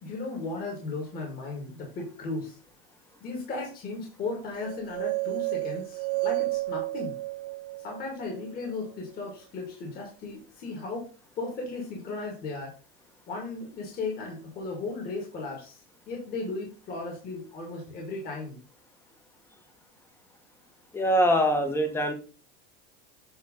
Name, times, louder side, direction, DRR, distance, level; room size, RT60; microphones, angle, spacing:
voice 1, 0.0-2.6 3.2-7.2 7.8-11.1 11.4-12.7 13.3-18.6, left 3 dB, 30° left, 0 dB, 1.9 m, -36 dB
sound 1, 4.6-8.7, right 23 dB, 65° right, 0.9 m, -32 dB
voice 2, 20.9-22.1, equal, 10° left, 5 dB, 1.1 m, -23 dB
8.2 x 3.1 x 5.2 m, 0.36 s
supercardioid pair, 145°, 30 cm